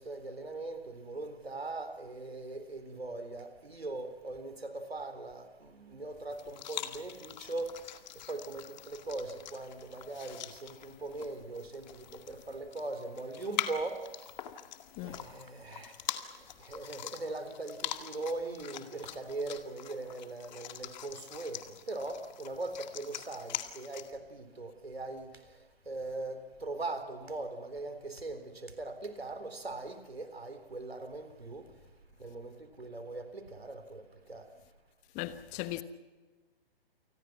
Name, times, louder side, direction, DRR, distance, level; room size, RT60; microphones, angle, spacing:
voice 1, 0.1-7.7 8.3-10.4 10.6-13.9 15.1-15.9 16.7-21.6 21.9-25.3 25.9-26.4 26.6-31.6 32.2-32.5 32.8-34.0 34.3-34.4, right 2 dB, 90° right, 3.9 m, -40 dB
sound 1, 6.3-24.1, left 10 dB, 45° left, 2.1 m, -44 dB
voice 2, 35.1-35.8, left 15 dB, 25° left, 1.2 m, -37 dB
29.0 x 20.5 x 6.1 m
figure-of-eight pair, 130°, 30 cm